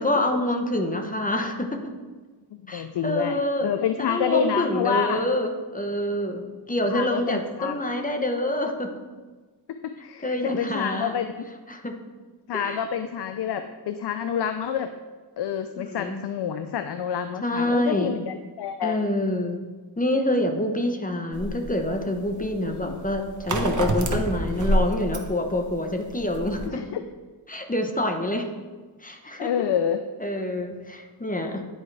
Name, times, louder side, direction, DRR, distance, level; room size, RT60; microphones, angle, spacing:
voice 1, 0.0-1.8 2.7-3.7 4.0-8.9 10.2-11.1 11.7-12.0 12.5-12.8 15.8-16.2 17.4-18.1 18.8-19.6 20.0-26.8 27.5-28.5 29.0-29.5 30.2-31.6, left 1 dB, 20° left, 4 dB, 0.8 m, -26 dB
voice 2, 2.5-5.2 6.9-7.8 9.7-11.4 12.5-14.9 15.4-19.0 22.6-23.1 26.7-27.0 29.4-30.0, left 8 dB, 65° left, 8 dB, 0.5 m, -28 dB
sound 1, 21.3-26.7, right 1 dB, 45° right, 0.8 m, -28 dB
9.8 x 4.6 x 3.3 m, 1.3 s
wide cardioid pair, 75°, 43 cm